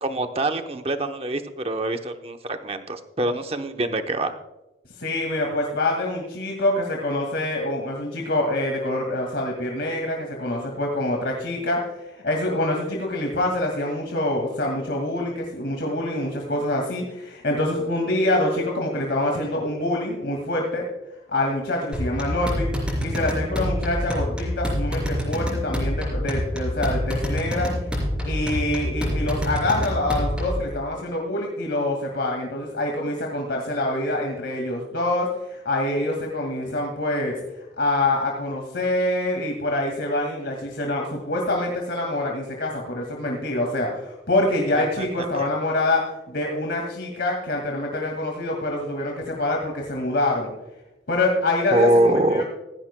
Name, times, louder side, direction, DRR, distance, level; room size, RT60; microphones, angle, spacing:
voice 1, 0.0-4.4 44.8-45.1 45.4-45.5 51.7-52.4, right 1 dB, 35° right, 7 dB, 0.8 m, -24 dB
voice 2, 5.0-20.8 21.3-22.7 23.0-27.7 28.2-37.3 37.8-46.0 46.3-50.5 51.1-52.4, left 1 dB, 75° left, 0 dB, 2.0 m, -25 dB
sound 1, 21.9-30.7, equal, 5° right, 4.0 m, -27 dB
16.0 x 15.0 x 2.2 m, 1.0 s
head